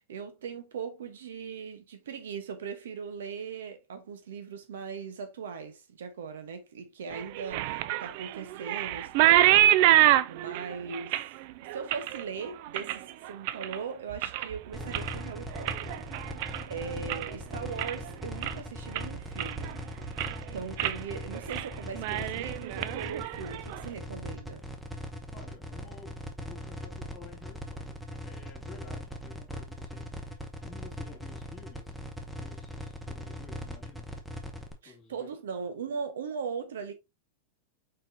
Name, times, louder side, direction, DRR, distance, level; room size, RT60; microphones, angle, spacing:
voice 1, 0.1-9.7 10.3-11.2 11.7-16.0 16.7-19.7 20.5-24.6 34.8-36.9, right 6 dB, 85° right, 1.1 m, -39 dB
sound 1, 7.1-13.8 14.1-14.6 14.9-17.3 17.6-18.1 18.4-18.5 18.9-19.7 20.0-20.4 20.8-21.0 21.3-21.7 21.9-23.8, right 13 dB, 55° right, 0.4 m, -26 dB
sound 2, 14.7-34.7, equal, ahead, 0.9 m, -40 dB
voice 2, 25.3-32.0 32.3-34.1 34.8-35.3, left 4 dB, 25° left, 2.4 m, -52 dB
4.6 x 4.1 x 2.8 m
supercardioid pair, 135°, 0 cm